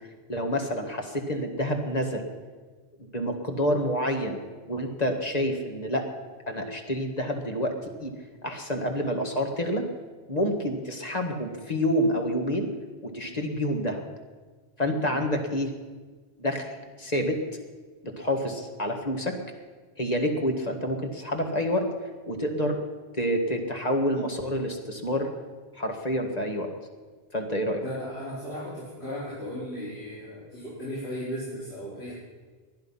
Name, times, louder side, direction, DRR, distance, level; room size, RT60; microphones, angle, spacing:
voice 1, 0.3-2.3 3.1-6.1 6.5-7.7 8.0-8.1 8.4-9.9 10.3-12.7 13.0-14.0 14.8-15.7 16.4-16.7 17.0-17.4 18.2-19.4 20.0-21.9 22.3-22.8 23.2-25.3 25.7-26.7 27.3-27.8, equal, 40° left, 3 dB, 1.8 m, -28 dB
voice 2, 27.8-32.1, equal, 75° left, -9 dB, 4.8 m, -36 dB
19.5 x 11.5 x 5.6 m, 1.4 s
omnidirectional pair, 1.1 m